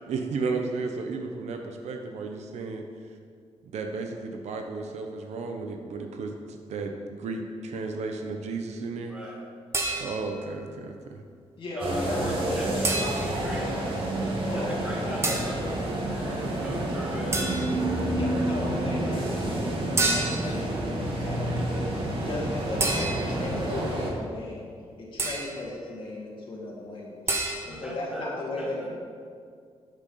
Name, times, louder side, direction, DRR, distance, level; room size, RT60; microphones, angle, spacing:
voice 1, 0.1-2.8 3.7-9.1 10.0-11.2, right 4 dB, 85° right, 4 dB, 0.9 m, -33 dB
voice 2, 9.1-9.4 11.7-13.7 14.5-15.6 16.6-17.4 27.6-28.3 28.6-28.9, right 1 dB, 10° right, -5 dB, 2.3 m, -39 dB
sound 1, 9.7-10.4 12.8-13.5 15.2-15.6 17.3-17.9 20.0-20.6 22.8-23.5 25.2-25.7 27.3-27.6, right 2 dB, 25° right, 1.0 m, -29 dB
voice 3, 11.6-13.9 14.4-16.0 16.2-16.6 18.1-21.6 21.9-24.7 25.0-28.9, left 2 dB, 50° left, -4 dB, 2.0 m, -36 dB
sound 2, 11.8-24.1, right 1 dB, 50° right, 1.8 m, -29 dB
10.5 x 6.5 x 5.7 m, 2.1 s
wide cardioid pair, 165°, 11 cm